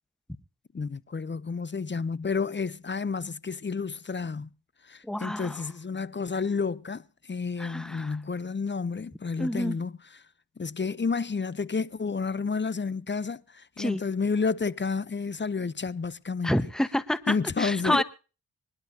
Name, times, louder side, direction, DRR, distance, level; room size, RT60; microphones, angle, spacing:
voice 1, 0.7-4.5 4.8-9.9 10.6-16.6 17.3-18.0, left 5 dB, 25° left, 0.7 m, -30 dB
voice 2, 5.0-5.6 7.6-8.2 9.4-9.8 13.8-14.0 16.4-18.0, left 1 dB, ahead, 1.2 m, -28 dB
25.0 x 11.5 x 2.8 m
cardioid pair, 45°, 43 cm